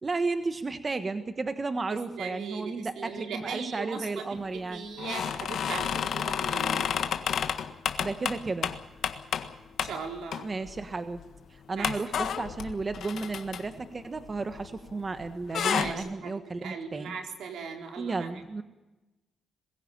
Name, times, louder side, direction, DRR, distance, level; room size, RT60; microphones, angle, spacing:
voice 1, 0.0-4.9 8.0-8.7 10.4-11.2 11.5-17.1 18.0-18.6, right 3 dB, 30° right, 9 dB, 1.4 m, -33 dB
voice 2, 2.2-6.9 9.8-10.5 11.7-11.9 15.6-18.3, right 5 dB, 85° right, 2 dB, 4.4 m, -38 dB
sound 1, 5.0-9.5 9.8-10.0 10.3-10.8 11.1-11.2 11.8-14.9 15.2-15.9, left 8 dB, 75° left, 1.6 m, -31 dB
22.5 x 16.0 x 8.8 m, 1.1 s
cardioid pair, 105°, 0 cm